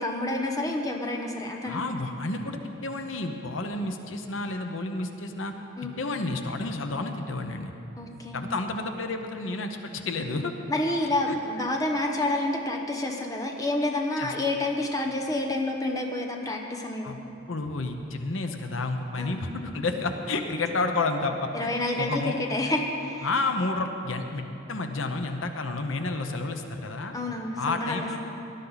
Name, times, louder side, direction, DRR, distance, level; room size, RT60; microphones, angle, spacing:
voice 1, 0.0-1.8 5.8-6.0 8.0-8.4 10.7-17.2 19.2-19.4 21.5-23.3 27.1-28.1, left 2 dB, 20° left, 2 dB, 1.0 m, -29 dB
voice 2, 1.6-5.5 6.0-7.7 8.3-10.5 11.3-11.4 14.2-14.3 17.0-17.2 17.5-21.7 22.0-22.4 23.2-24.4 24.7-27.2 27.6-28.2, left 3 dB, 85° left, 5 dB, 0.9 m, -30 dB
18.5 x 12.0 x 4.1 m, 2.7 s
head